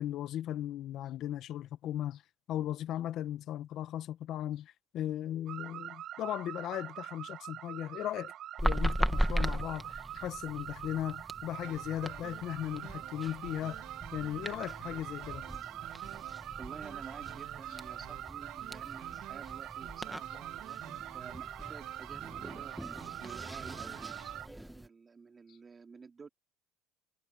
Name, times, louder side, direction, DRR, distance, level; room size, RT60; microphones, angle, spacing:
voice 1, 0.0-2.2 2.5-8.3 8.6-13.8 14.1-15.5, left 12 dB, 60° left, 1.4 m, -37 dB
sound 1, 5.5-24.5, right 12 dB, 55° right, 6.0 m, -44 dB
sound 2, 8.6-24.9, right 1 dB, 5° right, 1.8 m, -39 dB
sound 3, 11.6-24.4, right 16 dB, 70° right, 2.0 m, -51 dB
voice 2, 16.3-26.3, right 5 dB, 25° right, 3.3 m, -51 dB
supercardioid pair, 100°, 0 cm